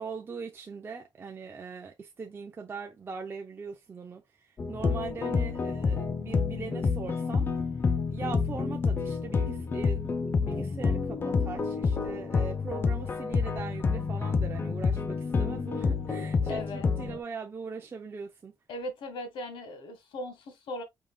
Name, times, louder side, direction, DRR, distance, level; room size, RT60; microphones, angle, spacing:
voice 1, 0.0-7.5 8.1-10.0 10.3-18.5, right 5 dB, 30° right, 0.6 m, -41 dB
sound 1, 4.6-17.2, left 5 dB, 25° left, 0.6 m, -28 dB
voice 2, 16.5-16.9 18.7-20.8, left 1 dB, 80° left, 1.5 m, -38 dB
5.1 x 3.6 x 2.3 m
cardioid pair, 150°, 8 cm